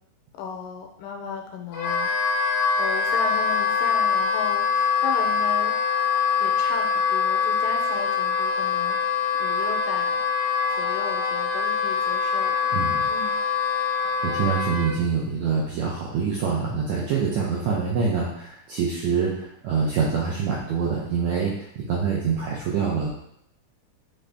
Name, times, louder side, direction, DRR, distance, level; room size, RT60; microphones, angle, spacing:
voice 1, 0.4-2.1 2.8-5.8 6.4-9.0 9.4-10.2 10.7-12.5 13.1-13.3, left 6 dB, 90° left, 2 dB, 2.2 m, -35 dB
Wind instrument woodwind instrument, 1.7-14.9, left 6 dB, 65° left, 1.4 m, -24 dB
voice 2, 12.7-13.1 14.2-23.1, right 5 dB, 75° right, -4 dB, 1.7 m, -25 dB
5.4 x 2.6 x 3.3 m, 0.74 s
omnidirectional pair, 3.8 m